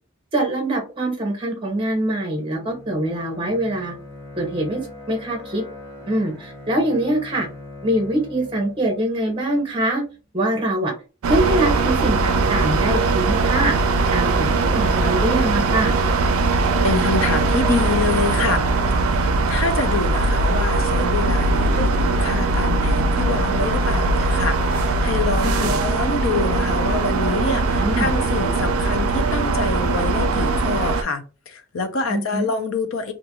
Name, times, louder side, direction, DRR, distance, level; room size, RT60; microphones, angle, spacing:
voice 1, 0.3-3.9 4.4-4.8 5.1-5.6 6.1-7.5 7.8-10.0 10.3-10.9 11.3-13.7 14.1-15.9 25.4-25.7 27.8-28.1 32.1-32.5, right 1 dB, 25° right, 0.6 m, -23 dB
Bowed string instrument, 2.2-10.0, left 2 dB, 15° left, 0.8 m, -41 dB
sound 1, 11.2-31.0, right 3 dB, 85° right, 0.4 m, -20 dB
voice 2, 16.8-18.7 19.1-33.1, left 3 dB, 70° left, 0.6 m, -26 dB
2.5 x 2.3 x 2.8 m
head